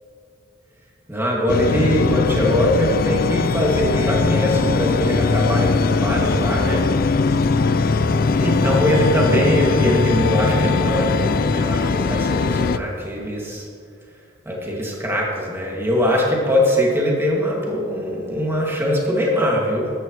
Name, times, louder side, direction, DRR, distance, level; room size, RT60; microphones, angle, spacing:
voice 1, 1.1-6.8 8.4-13.7 14.5-19.9, equal, 10° right, -3 dB, 2.3 m, -21 dB
sound 1, 1.5-12.8, left 4 dB, 50° left, 0.4 m, -20 dB
14.0 x 11.5 x 3.2 m, 2.3 s
head